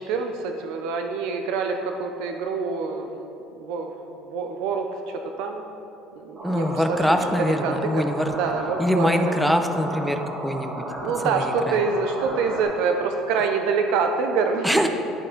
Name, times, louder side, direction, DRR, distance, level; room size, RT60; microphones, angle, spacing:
voice 1, 0.0-3.1 3.6-3.9 4.3-4.9 5.4-5.6 6.2-7.0 7.4-9.6 11.0-14.7, right 5 dB, 65° right, 5 dB, 0.4 m, -26 dB
voice 2, 6.4-8.3 8.8-10.8 11.2-11.8 14.6-14.9, equal, ahead, 6 dB, 0.3 m, -23 dB
sound 1, 6.4-12.6, right 1 dB, 25° right, 1.4 m, -34 dB
10.5 x 4.2 x 3.8 m, 2.8 s
cardioid pair, 170°, 0 cm